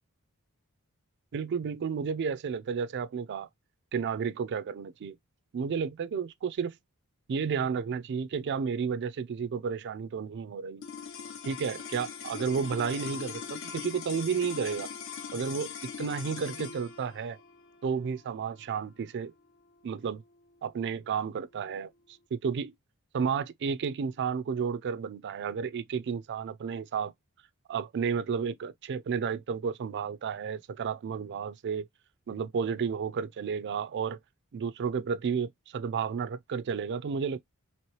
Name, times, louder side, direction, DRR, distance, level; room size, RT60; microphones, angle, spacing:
voice 1, 1.3-3.5 3.9-5.2 5.5-6.8 7.3-10.8 11.4-14.9 15.3-17.4 17.8-19.3 19.8-20.2 20.6-21.9 22.3-22.7 23.1-27.1 27.7-31.9 32.3-34.2 34.5-37.4, right 6 dB, 50° right, 0.4 m, -32 dB
sound 1, 10.8-21.2, left 6 dB, 60° left, 0.6 m, -41 dB
3.0 x 2.9 x 3.0 m
head